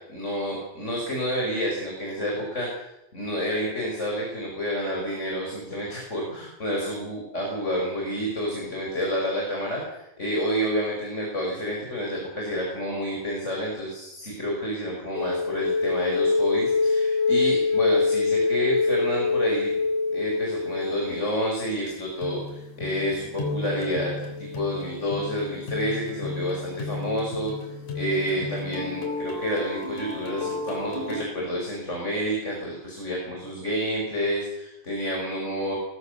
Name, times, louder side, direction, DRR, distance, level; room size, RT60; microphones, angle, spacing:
voice 1, 0.1-19.7 20.1-24.1 24.4-35.7, equal, 20° left, -2 dB, 5.6 m, -29 dB
sound 1, 15.1-21.9 22.2-31.2, left 3 dB, 55° left, 4.7 m, -27 dB
21.5 x 21.0 x 6.7 m, 0.90 s
omnidirectional pair, 4.1 m